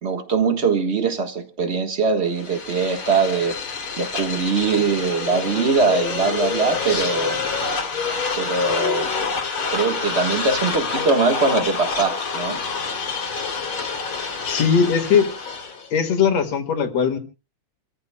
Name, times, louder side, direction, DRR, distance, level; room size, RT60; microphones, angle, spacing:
voice 1, 0.0-3.6 4.0-7.4 8.4-9.1 9.7-12.6, right 4 dB, 45° right, 0.8 m, -22 dB
sound 1, 2.3-15.9, left 5 dB, 45° left, 3.0 m, -27 dB
voice 2, 14.5-15.3 15.9-17.2, left 6 dB, 60° left, 2.7 m, -19 dB
28.5 x 15.0 x 2.2 m
omnidirectional pair, 3.4 m